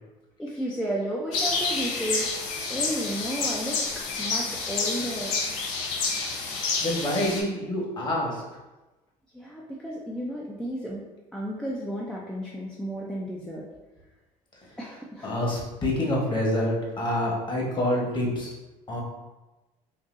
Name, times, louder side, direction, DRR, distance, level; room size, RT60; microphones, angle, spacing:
voice 1, 0.4-2.3 2.7-5.4 9.3-11.0 11.3-13.6 14.8-15.3, right 1 dB, 5° left, -4 dB, 0.5 m, -33 dB
sound 1, 1.3-7.4, left 4 dB, 85° left, 0.6 m, -29 dB
voice 2, 6.8-8.4 15.2-18.5 18.9-19.0, left 1 dB, 30° left, -2 dB, 1.2 m, -27 dB
3.9 x 2.6 x 2.6 m, 1.1 s
supercardioid pair, 85°, 16 cm